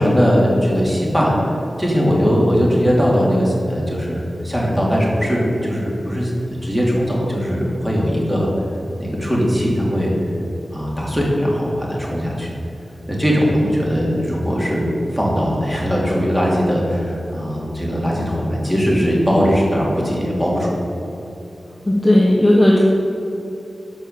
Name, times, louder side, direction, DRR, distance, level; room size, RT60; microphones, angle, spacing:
voice 1, 0.0-1.3 1.8-8.5 9.0-10.1 10.7-12.5 13.1-20.8, equal, 10° right, -4 dB, 2.9 m, -19 dB
voice 2, 21.8-22.8, left 1 dB, 10° left, -3 dB, 1.2 m, -14 dB
12.5 x 5.6 x 6.8 m, 2.9 s
wide cardioid pair, 85°, 0 cm